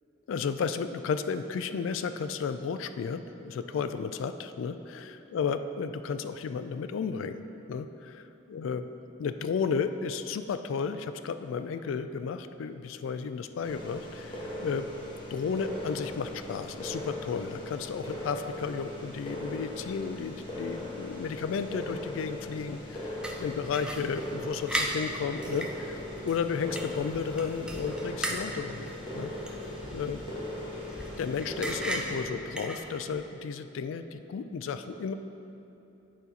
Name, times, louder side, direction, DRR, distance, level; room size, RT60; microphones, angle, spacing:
voice 1, 0.3-7.4 7.7-8.1 8.5-8.9 9.2-15.0 15.3-29.3 29.9-30.2 31.2-35.1, left 5 dB, 75° left, 10 dB, 0.3 m, -33 dB
sound 1, 13.6-32.3, left 1 dB, 25° left, 1.2 m, -39 dB
sound 2, 23.2-33.3, right 1 dB, 5° right, 0.4 m, -38 dB
10.5 x 4.2 x 4.0 m, 2.9 s
head